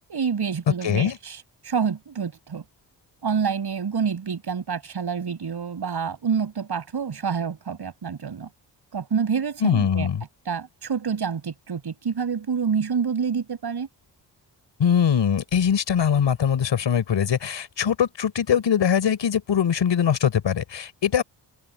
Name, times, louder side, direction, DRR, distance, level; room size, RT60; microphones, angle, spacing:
voice 1, 0.1-1.4 1.6-2.6 3.2-8.5 8.9-10.1 10.5-13.9, right 6 dB, 55° right, 8.0 m, -27 dB
voice 2, 0.8-1.2 9.6-10.2 14.8-21.2, left 8 dB, 70° left, 4.7 m, -22 dB
cardioid pair, 60°, 45 cm